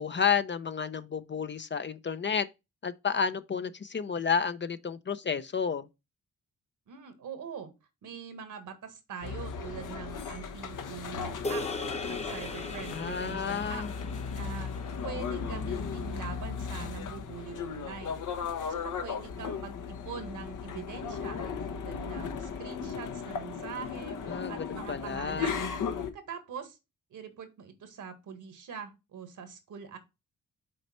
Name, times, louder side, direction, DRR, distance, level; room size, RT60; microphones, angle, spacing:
voice 1, 0.0-2.5 2.8-5.9 12.9-13.9 24.3-25.5, left 6 dB, 35° left, 0.7 m, -31 dB
voice 2, 6.9-7.7 8.0-11.6 12.1-13.8 14.3-14.7 15.0-18.2 18.7-21.4 21.7-25.7 26.1-26.8 27.1-30.0, right 6 dB, 70° right, 1.8 m, -43 dB
sound 1, 9.2-26.1, left 6 dB, 70° left, 1.1 m, -36 dB
sound 2, 11.4-15.9, left 2 dB, 20° left, 1.0 m, -39 dB
6.5 x 4.1 x 4.4 m
supercardioid pair, 50°, 32 cm